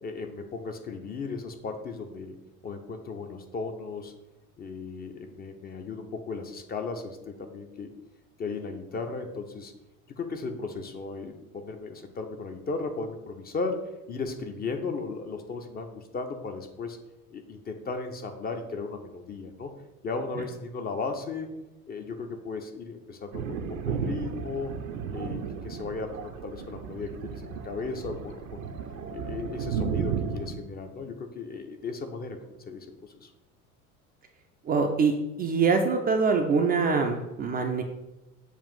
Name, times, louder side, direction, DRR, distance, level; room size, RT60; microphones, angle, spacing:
voice 1, 0.0-2.4 2.6-4.1 4.6-7.9 8.4-9.7 10.1-13.8 14.1-17.0 17.3-19.7 20.0-21.5 21.9-23.6 23.9-24.7 25.1-28.6 29.1-32.4 32.7-33.3, left 4 dB, 20° left, 5 dB, 0.6 m, -36 dB
Thunder, 23.3-30.6, right 6 dB, 65° right, 0.8 m, -34 dB
voice 2, 34.6-37.8, right 4 dB, 20° right, 3 dB, 0.5 m, -24 dB
7.2 x 2.5 x 5.3 m, 0.99 s
figure-of-eight pair, 70°, 44 cm